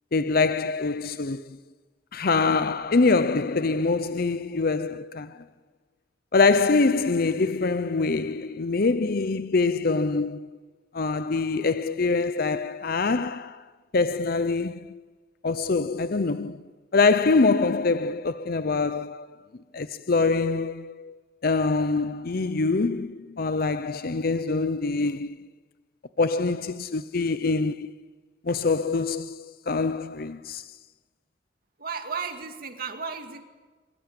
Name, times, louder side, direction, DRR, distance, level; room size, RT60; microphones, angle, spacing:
voice 1, 0.1-1.4 2.1-5.4 6.3-10.5 10.9-13.6 13.9-15.0 15.4-16.6 16.9-19.3 19.7-21.1 21.4-25.5 26.2-27.9 28.5-30.6, left 3 dB, 55° left, 0.7 m, -24 dB
voice 2, 31.8-33.4, right 5 dB, 55° right, 2.2 m, -34 dB
24.0 x 21.5 x 8.9 m
head